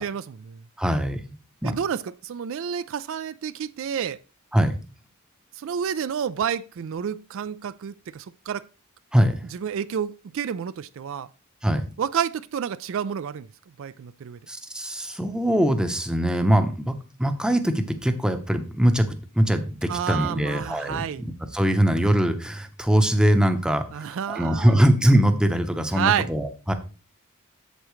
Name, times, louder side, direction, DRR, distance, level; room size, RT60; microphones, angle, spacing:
voice 1, 0.0-0.6 1.6-4.2 5.5-8.6 9.5-11.3 12.0-13.5 13.8-14.4 19.9-21.2 23.9-24.8 25.9-26.3, right 8 dB, 65° right, 0.4 m, -29 dB
voice 2, 0.8-1.4 1.6-1.7 4.5-4.7 9.1-9.4 11.6-11.8 14.5-19.1 19.3-26.7, equal, 5° right, 0.7 m, -22 dB
8.2 x 7.5 x 3.1 m
head